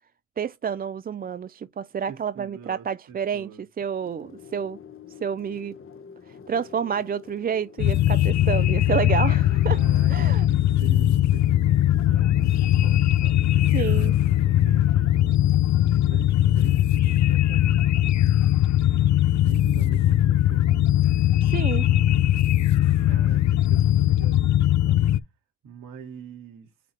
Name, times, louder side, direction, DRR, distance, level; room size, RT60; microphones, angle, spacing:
voice 1, 0.4-3.5 3.8-4.8 5.2-5.8 6.3-9.8 10.1-10.5 13.7-14.1 21.4-21.9, right 7 dB, 30° right, 0.3 m, -29 dB
voice 2, 2.1-3.6 9.7-15.1 15.8-18.1 19.3-20.8 21.7-22.3 23.0-25.2 25.6-26.7, right 7 dB, 85° right, 2.2 m, -44 dB
sound 1, 4.0-16.8, left 7 dB, 40° left, 1.2 m, -47 dB
sound 2, 7.8-25.2, left 13 dB, 60° left, 0.5 m, -20 dB
8.3 x 3.6 x 3.3 m
cardioid pair, 80°, 31 cm